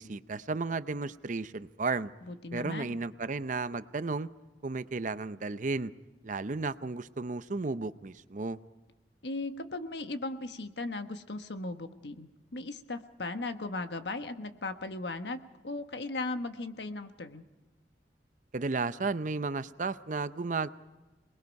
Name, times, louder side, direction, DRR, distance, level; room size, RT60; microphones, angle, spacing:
voice 1, 0.0-2.1 2.5-4.3 4.6-5.9 6.2-8.6 18.5-20.7, right 3 dB, 45° right, 13 dB, 0.7 m, -33 dB
voice 2, 2.2-3.0 9.2-17.5, left 2 dB, 75° left, 8 dB, 1.3 m, -37 dB
27.5 x 20.5 x 5.3 m, 1.2 s
head